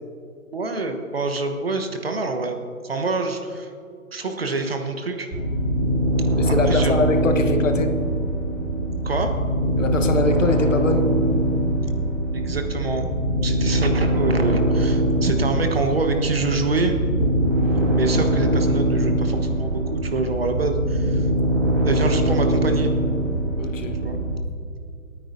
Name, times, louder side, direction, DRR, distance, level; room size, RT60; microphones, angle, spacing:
voice 1, 0.5-2.6 2.8-3.7 4.1-5.3 6.5-6.9 9.0-9.3 12.3-13.1 13.4-16.9 17.9-21.3 21.8-22.9 24.0-24.2, right 3 dB, 45° right, 5 dB, 1.3 m, -26 dB
sound 1, 5.3-24.3, right 1 dB, 15° right, 2.1 m, -22 dB
voice 2, 6.4-7.9 9.8-11.1 23.6-24.0, left 3 dB, 60° left, 7 dB, 1.3 m, -23 dB
27.0 x 9.7 x 2.7 m, 2.3 s
hypercardioid pair, 170°, 42 cm